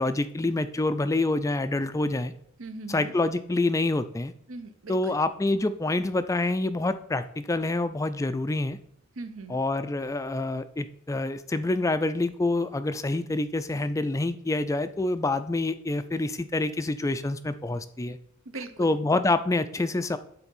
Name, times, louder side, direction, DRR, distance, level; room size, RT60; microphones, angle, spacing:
voice 1, 0.0-2.3 2.9-4.3 4.9-8.8 9.5-18.2 18.8-20.2, left 2 dB, 15° left, 11 dB, 0.4 m, -27 dB
voice 2, 2.6-3.1 4.5-5.2 9.2-9.6 18.5-18.9, right 3 dB, 70° right, 9 dB, 0.8 m, -39 dB
9.8 x 4.1 x 5.4 m, 0.68 s
head